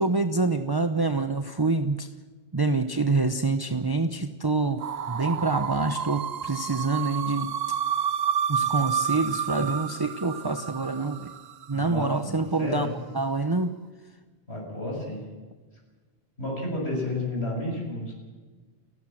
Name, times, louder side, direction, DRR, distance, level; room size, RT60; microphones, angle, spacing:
voice 1, 0.0-2.1 2.5-7.8 8.5-11.3 11.7-12.9 13.1-13.7, right 3 dB, 25° right, 9 dB, 0.9 m, -26 dB
sound 1, 4.8-11.8, right 8 dB, 70° right, 1.1 m, -30 dB
voice 2, 11.7-12.9 14.5-15.2 16.4-18.1, left 1 dB, 80° left, -1 dB, 7.3 m, -31 dB
29.5 x 12.5 x 7.7 m, 1.3 s
omnidirectional pair, 1.1 m